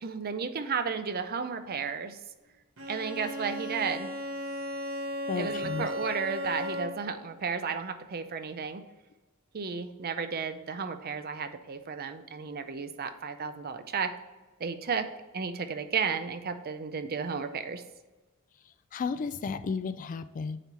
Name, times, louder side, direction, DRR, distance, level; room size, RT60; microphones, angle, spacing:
voice 1, 0.0-2.2 2.9-4.2 5.4-8.8 9.5-14.1 14.6-15.1 15.3-17.8, right 5 dB, 45° right, 9 dB, 0.6 m, -33 dB
Bowed string instrument, 2.8-7.2, equal, 70° right, 1.3 m, -35 dB
voice 2, 5.3-5.9 18.9-20.6, left 5 dB, 40° left, 12 dB, 0.3 m, -33 dB
9.0 x 3.1 x 5.5 m, 1.1 s
head